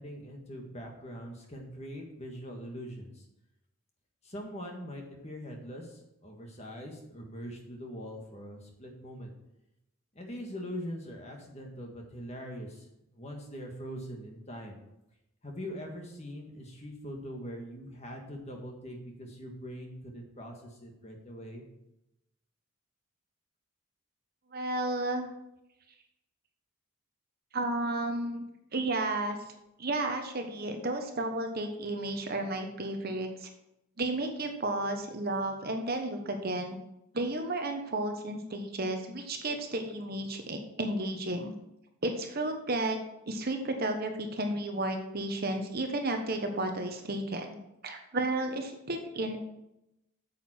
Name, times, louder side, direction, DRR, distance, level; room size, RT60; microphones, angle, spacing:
voice 1, 0.0-3.2 4.2-9.3 10.1-12.9 13.1-14.8 15.4-21.6, equal, 30° left, 1 dB, 1.6 m, -42 dB
voice 2, 24.5-25.3 27.5-28.4 28.7-29.4 29.8-33.5 34.0-36.8 37.1-41.5 42.0-43.0 43.3-47.6 47.8-49.4, right 2 dB, 45° right, 5 dB, 1.0 m, -32 dB
9.1 x 7.4 x 4.4 m, 0.86 s
head